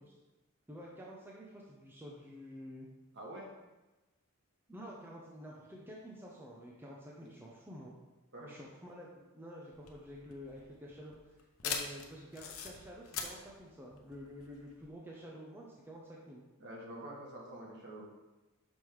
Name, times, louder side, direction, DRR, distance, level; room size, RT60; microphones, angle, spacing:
voice 1, 0.7-2.9 4.7-7.9 8.5-11.4 11.6-16.4, equal, 10° right, -3 dB, 0.8 m, -49 dB
voice 2, 3.1-3.5 8.3-8.6 16.6-18.1, right 1 dB, 55° right, -3 dB, 1.9 m, -46 dB
sound 1, 9.7-14.9, left 6 dB, 70° left, 0.9 m, -42 dB
6.2 x 5.4 x 4.7 m, 1.1 s
head